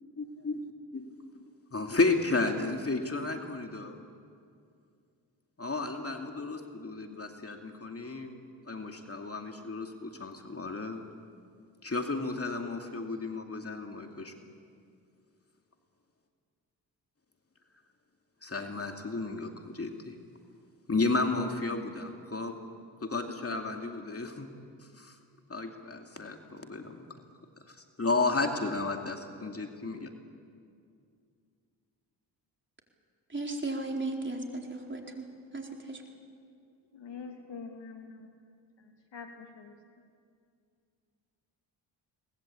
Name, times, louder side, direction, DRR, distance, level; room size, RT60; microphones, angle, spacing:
voice 1, 0.2-0.6 0.9-1.1 1.7-4.0 5.6-8.3 8.7-11.0 11.8-14.3 18.4-20.1 20.9-22.5 23.0-24.5 25.0-25.2 25.5-27.0 27.7-30.1, left 3 dB, 30° left, 4 dB, 2.5 m, -33 dB
voice 2, 33.3-35.3 35.5-36.0, right 2 dB, 25° right, 1 dB, 4.3 m, -35 dB
voice 3, 36.9-38.3 39.1-39.8, left 5 dB, 65° left, 5 dB, 2.6 m, -44 dB
23.0 x 19.5 x 8.5 m, 2.3 s
supercardioid pair, 55°, 46 cm